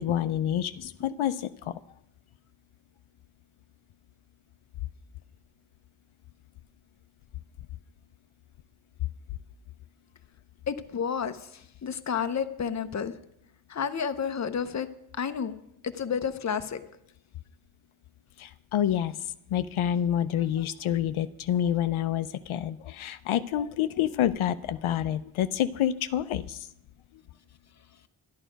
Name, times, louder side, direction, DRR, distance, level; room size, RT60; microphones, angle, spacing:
voice 1, 0.0-1.7 18.4-19.1 19.5-26.6, left 10 dB, 80° left, 12 dB, 0.6 m, -28 dB
voice 2, 10.7-11.4 11.8-13.1 13.7-14.9 15.2-15.5 15.8-16.8, left 7 dB, 35° left, 9 dB, 0.7 m, -30 dB
11.5 x 11.0 x 5.1 m, 0.79 s
wide cardioid pair, 125°, 48 cm